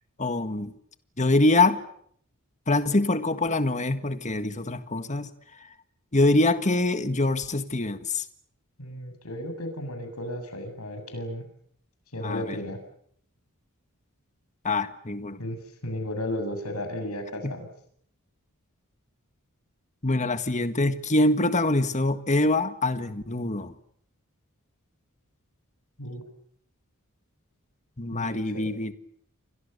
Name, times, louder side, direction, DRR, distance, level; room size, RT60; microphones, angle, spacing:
voice 1, 0.2-0.7 1.2-1.8 2.7-5.3 6.1-8.3 12.2-12.6 14.6-15.4 17.4-17.5 20.0-23.7 28.0-28.9, left 2 dB, 35° left, 1.7 m, -24 dB
voice 2, 8.8-11.4 12.1-12.8 15.4-15.6 15.8-17.7 26.0-26.2 28.1-28.6, left 1 dB, 85° left, 7.5 m, -34 dB
30.0 x 24.5 x 6.9 m
head